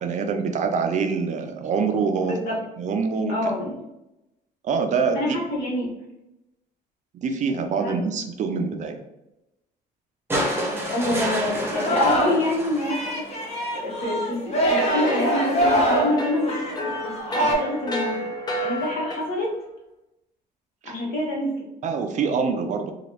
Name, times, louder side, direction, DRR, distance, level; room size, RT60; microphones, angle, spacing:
voice 1, 0.0-2.4 2.8-3.3 4.6-5.4 7.1-9.0 20.8-20.9 21.8-22.9, right 5 dB, 45° right, 6 dB, 0.4 m, -25 dB
voice 2, 2.2-2.6 3.3-3.8 5.1-5.9 7.8-8.0 8.5-8.7 10.9-13.3 13.7-18.3 18.6-19.6 20.8-21.6, left 1 dB, 70° left, -3 dB, 1.1 m, -27 dB
sound 1, 10.3-13.6 14.9-15.0, right 1 dB, 15° right, 0.8 m, -29 dB
Singing, 11.7-12.5 12.8-17.6, right 1 dB, 40° left, 0.9 m, -24 dB
sound 2, 14.7-19.5, equal, 25° left, 0.5 m, -31 dB
3.0 x 2.3 x 2.9 m, 0.91 s
cardioid pair, 110°, 17 cm